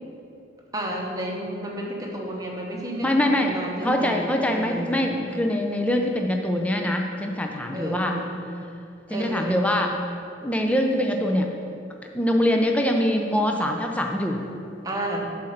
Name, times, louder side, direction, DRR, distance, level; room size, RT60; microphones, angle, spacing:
voice 1, 0.7-5.0 7.7-8.4 9.1-9.7 14.8-15.2, right 1 dB, 20° right, -1 dB, 1.0 m, -31 dB
voice 2, 3.0-3.5 3.8-8.2 9.1-9.9 10.4-11.5 12.1-14.4, left 1 dB, 5° left, 2 dB, 0.4 m, -23 dB
7.5 x 4.3 x 6.5 m, 2.5 s
head